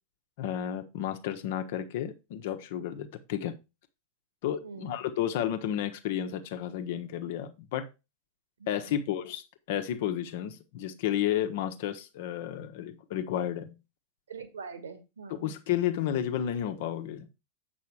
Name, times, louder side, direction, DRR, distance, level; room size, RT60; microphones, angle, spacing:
voice 1, 0.4-3.6 4.4-7.9 8.7-9.4 9.7-13.8 15.3-17.3, left 10 dB, 50° left, 1.1 m, -32 dB
voice 2, 4.6-5.0 8.6-9.0 14.3-15.5, right 5 dB, 70° right, 1.7 m, -44 dB
8.1 x 6.1 x 4.7 m
figure-of-eight pair, 90°, 0 cm